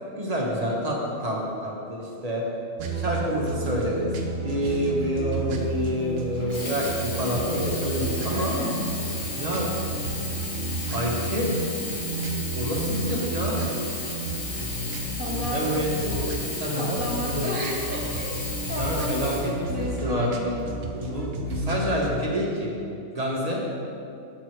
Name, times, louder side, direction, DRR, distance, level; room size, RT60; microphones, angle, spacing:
voice 1, 0.2-2.4 2.9-4.1 4.4-8.5 9.3-9.7 10.9-11.5 12.6-13.6 15.5-17.8 18.8-19.5 19.8-20.3 20.9-22.7 23.1-23.6, equal, 30° right, -2 dB, 1.0 m, -28 dB
sound 1, 2.8-22.2, right 1 dB, 70° right, 1.0 m, -31 dB
Sink (filling or washing), 6.4-20.2 20.9-21.0, left 2 dB, 60° left, 1.5 m, -35 dB
voice 2, 8.3-8.8 15.2-15.7 16.7-18.4 18.7-20.6, equal, 15° right, -2 dB, 0.3 m, -33 dB
7.6 x 4.6 x 4.5 m, 2.5 s
omnidirectional pair, 1.4 m